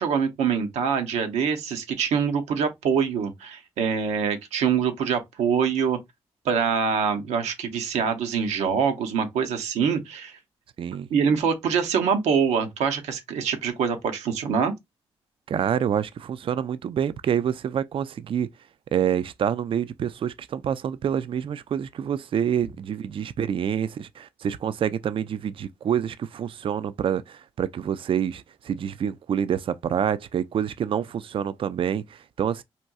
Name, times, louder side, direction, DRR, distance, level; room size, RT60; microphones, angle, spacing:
voice 1, 0.0-6.0 6.4-10.3 11.1-14.7, right 6 dB, 85° right, 0.7 m, -24 dB
voice 2, 15.5-18.5 18.9-32.6, right 8 dB, 50° right, 0.4 m, -27 dB
4.2 x 2.6 x 2.3 m
supercardioid pair, 55°, 11 cm